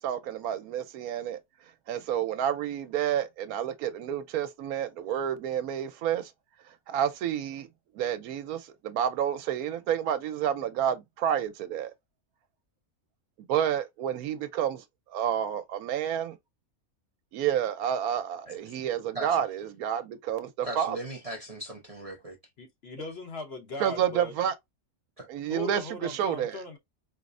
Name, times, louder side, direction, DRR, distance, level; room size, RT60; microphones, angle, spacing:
voice 1, 0.0-1.4 1.9-6.3 6.9-7.7 7.9-11.9 13.5-14.8 15.1-16.4 17.3-21.0 23.8-24.5 25.3-26.6, right 9 dB, 80° right, 1.1 m, -29 dB
voice 2, 18.5-18.8 19.1-19.4 20.6-22.4 25.2-25.3, right 2 dB, 35° right, 0.6 m, -39 dB
voice 3, 22.6-24.3 25.5-26.8, left 3 dB, 50° left, 1.0 m, -39 dB
4.6 x 2.0 x 2.5 m
omnidirectional pair, 1.5 m